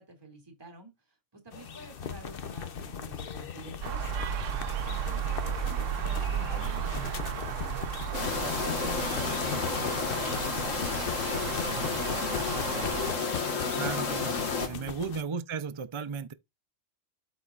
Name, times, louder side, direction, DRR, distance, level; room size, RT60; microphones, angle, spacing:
voice 1, 0.0-4.0 4.8-7.5 8.5-9.1 10.3-12.4 12.8-13.9 14.1-15.0, right 2 dB, 20° right, 2.4 m, -49 dB
sound 1, 1.5-15.2, left 7 dB, 50° left, 0.9 m, -39 dB
sound 2, 3.8-13.1, right 9 dB, 70° right, 1.0 m, -34 dB
sound 3, 8.1-14.7, left 4 dB, 70° left, 1.9 m, -31 dB
voice 2, 13.7-16.3, right 6 dB, 45° right, 0.3 m, -35 dB
12.5 x 4.2 x 2.4 m
omnidirectional pair, 1.4 m